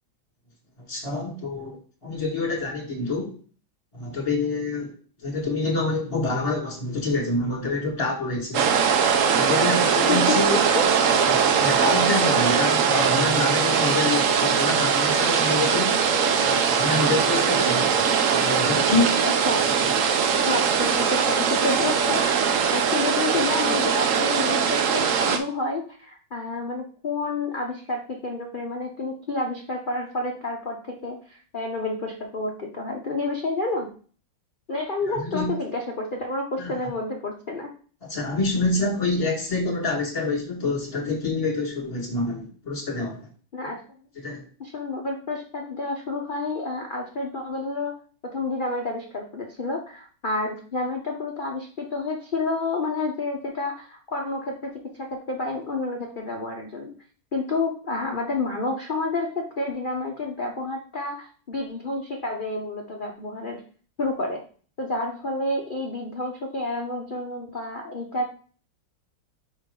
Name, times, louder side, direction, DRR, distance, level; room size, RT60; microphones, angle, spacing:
voice 1, 0.9-3.3 3.9-4.9 5.2-8.7 9.3-10.6 11.1-16.0 16.4-19.2 19.6-19.7 35.1-35.5 36.6-36.9 38.0-43.3 44.1-44.4, left 2 dB, 20° left, 0 dB, 1.6 m, -27 dB
sound 1, 8.5-25.4, right 6 dB, 80° right, 0.7 m, -21 dB
voice 2, 10.1-10.8 19.2-19.7 20.4-33.9 34.7-37.7 43.5-43.8 44.6-47.9 48.2-56.9 57.3-63.6 64.0-64.4 64.8-68.3, left 2 dB, 55° left, 0 dB, 0.5 m, -29 dB
5.2 x 5.1 x 3.7 m, 0.41 s
omnidirectional pair, 2.2 m